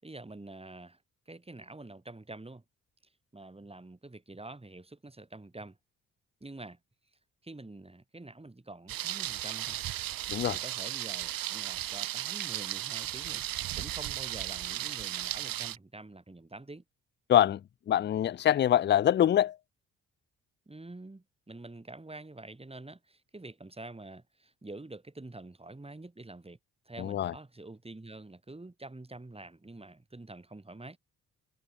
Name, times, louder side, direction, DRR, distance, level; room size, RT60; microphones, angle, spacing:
voice 1, 0.0-1.0 1.3-2.6 3.3-5.8 6.4-6.8 7.4-9.8 10.5-16.8 20.7-26.6 26.8-31.0, right 2 dB, 15° right, 6.7 m, -47 dB
Thunder, 8.9-15.8, right 13 dB, 75° right, 1.9 m, -35 dB
voice 2, 17.3-17.6 17.9-19.6 27.0-27.3, left 11 dB, 35° left, 0.4 m, -24 dB
supercardioid pair, 70°, 35 cm